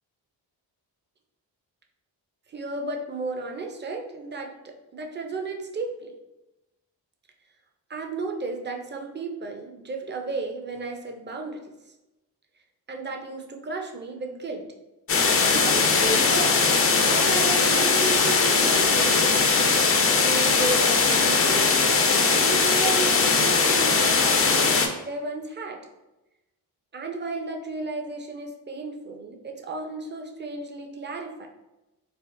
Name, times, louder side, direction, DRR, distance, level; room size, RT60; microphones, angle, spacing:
voice 1, 2.5-6.1 7.9-11.6 12.9-14.7 15.5-16.7 17.1-19.3 20.2-22.0 22.3-25.9 26.9-31.5, right 3 dB, 25° right, 3 dB, 0.5 m, -33 dB
sound 1, 15.1-24.9, left 4 dB, 30° left, 0.4 m, -20 dB
3.4 x 2.1 x 2.5 m, 1.0 s
supercardioid pair, 40°, 47 cm